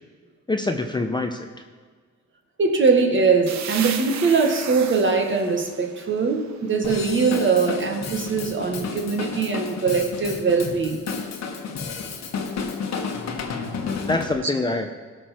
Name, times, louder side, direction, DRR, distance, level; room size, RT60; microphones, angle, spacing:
voice 1, 0.5-1.5 14.1-14.9, left 2 dB, 15° left, 5 dB, 0.7 m, -25 dB
voice 2, 2.6-11.1 13.8-14.1, right 4 dB, 40° right, 3 dB, 1.7 m, -22 dB
sound 1, 3.5-7.1, right 7 dB, 65° right, 1.0 m, -35 dB
Drum kit / Drum, 6.8-14.3, left 5 dB, 60° left, 1.4 m, -31 dB
17.5 x 6.1 x 4.4 m, 1.5 s
cardioid pair, 90°, 30 cm